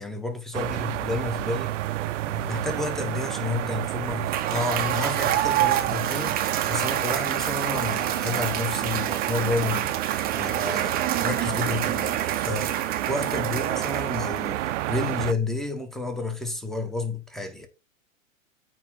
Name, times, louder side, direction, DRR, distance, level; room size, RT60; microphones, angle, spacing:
voice 1, 0.0-1.7 2.2-9.9 10.3-12.8 13.1-17.7, left 3 dB, ahead, 0.9 m, -31 dB
sound 1, 0.5-15.3, right 14 dB, 65° right, 0.6 m, -30 dB
Cheering / Applause / Crowd, 4.1-14.6, right 11 dB, 25° right, 0.6 m, -28 dB
8.6 x 2.9 x 3.7 m
hypercardioid pair, 110°, 40 cm